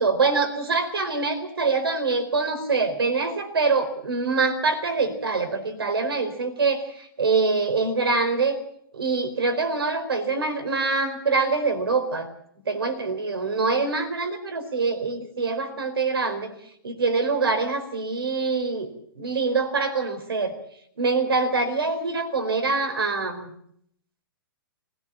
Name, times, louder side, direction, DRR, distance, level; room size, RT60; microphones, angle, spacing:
voice 1, 0.0-8.6 8.9-12.3 12.7-16.5 16.8-18.9 19.1-20.5 21.0-23.5, right 4 dB, 80° right, 6 dB, 4.5 m, -24 dB
21.0 x 16.5 x 7.6 m, 0.69 s
hypercardioid pair, 120°, 12 cm